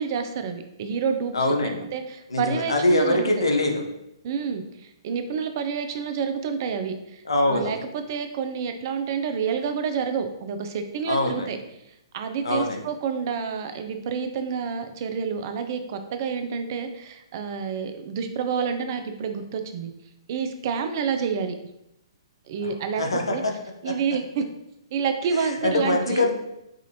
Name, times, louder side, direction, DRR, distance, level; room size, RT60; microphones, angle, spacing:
voice 1, 0.0-3.4 4.2-7.2 7.5-11.6 12.1-19.9 20.3-21.5 22.5-23.4 23.8-24.5 24.9-26.3, right 6 dB, 45° right, 7 dB, 0.5 m, -29 dB
voice 2, 1.3-1.8 2.3-3.8 7.3-7.7 11.1-11.5 12.4-12.8 23.0-23.5 23.8-23.9 25.6-26.3, left 2 dB, 80° left, 2 dB, 0.7 m, -23 dB
4.9 x 2.5 x 2.8 m, 0.84 s
figure-of-eight pair, 125°, 3 cm